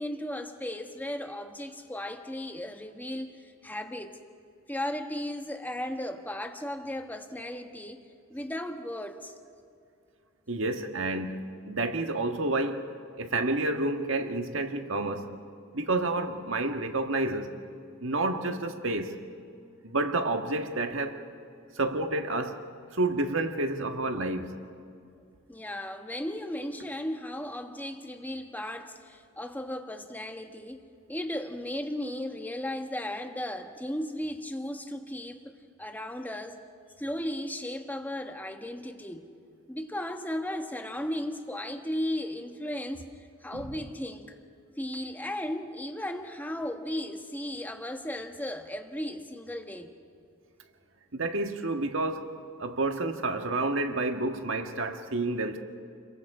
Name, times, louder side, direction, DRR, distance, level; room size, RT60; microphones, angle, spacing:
voice 1, 0.0-4.2 4.7-9.3 25.5-35.5 35.8-36.6 37.0-39.3 39.7-44.4 44.8-49.9, left 1 dB, 10° left, 1.3 m, -36 dB
voice 2, 10.5-12.9 13.2-15.3 15.7-17.5 18.0-19.1 19.8-21.2 21.7-22.6 22.9-24.5 43.5-43.7 51.1-52.3 52.6-55.6, right 2 dB, 70° right, 1.7 m, -29 dB
29.5 x 22.5 x 4.9 m
head